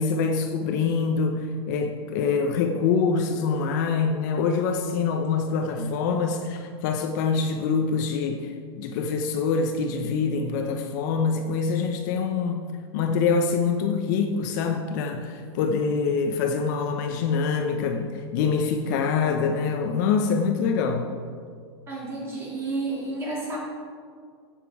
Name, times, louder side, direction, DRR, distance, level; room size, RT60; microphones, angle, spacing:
voice 1, 0.0-12.6 12.9-21.1, left 5 dB, 45° left, 5 dB, 0.8 m, -25 dB
voice 2, 21.9-23.6, right 3 dB, 20° right, -4 dB, 2.8 m, -31 dB
14.5 x 7.5 x 4.8 m, 2.1 s
supercardioid pair, 160°, 14 cm